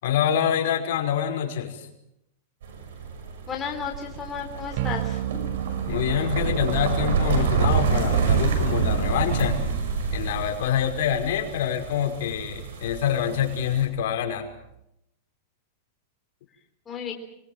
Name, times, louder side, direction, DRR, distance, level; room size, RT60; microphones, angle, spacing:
voice 1, 0.0-1.9 5.9-9.6 10.1-14.5, left 9 dB, 65° left, 2 dB, 5.6 m, -26 dB
sound 1, 2.6-13.9, right 5 dB, 75° right, 6.7 m, -27 dB
voice 2, 3.5-5.2 16.9-17.1, left 7 dB, 15° left, 1 dB, 3.7 m, -33 dB
sound 2, 4.8-14.8, right 13 dB, 50° right, 1.1 m, -36 dB
25.0 x 22.5 x 7.5 m, 0.80 s
supercardioid pair, 155°, 0 cm